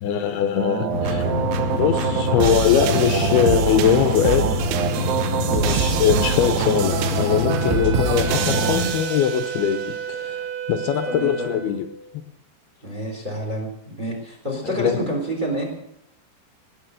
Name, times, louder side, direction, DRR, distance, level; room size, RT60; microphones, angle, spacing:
voice 1, 0.0-1.3 1.8-4.7 5.5-11.9 14.8-15.0, left 9 dB, 80° left, 9 dB, 2.7 m, -22 dB
sound 1, 0.6-9.8, right 8 dB, 80° right, 3.1 m, -25 dB
sound 2, 0.9-8.9, left 1 dB, 40° right, 6.8 m, -25 dB
Wind instrument woodwind instrument, 7.5-12.0, right 7 dB, 65° right, 2.7 m, -32 dB
voice 2, 11.1-11.5 12.8-15.7, right 1 dB, 15° right, 1 dB, 3.0 m, -28 dB
18.5 x 6.8 x 8.0 m, 0.78 s
omnidirectional pair, 4.8 m